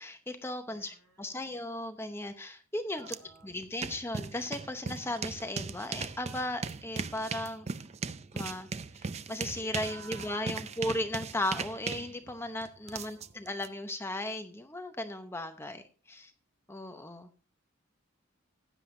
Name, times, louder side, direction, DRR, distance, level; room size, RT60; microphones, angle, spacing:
voice 1, 0.0-3.0 3.4-7.7 8.3-8.7 9.0-16.3 16.7-17.3, left 1 dB, 10° left, 7 dB, 0.7 m, -36 dB
voice 2, 0.6-1.6 2.9-3.5 9.5-11.1 12.8-13.5, right 2 dB, 75° right, 2 dB, 4.2 m, -55 dB
sound 1, 3.1-3.2 3.5-13.7, right 5 dB, 30° right, 0.4 m, -38 dB
15.0 x 9.8 x 2.7 m, 0.35 s
head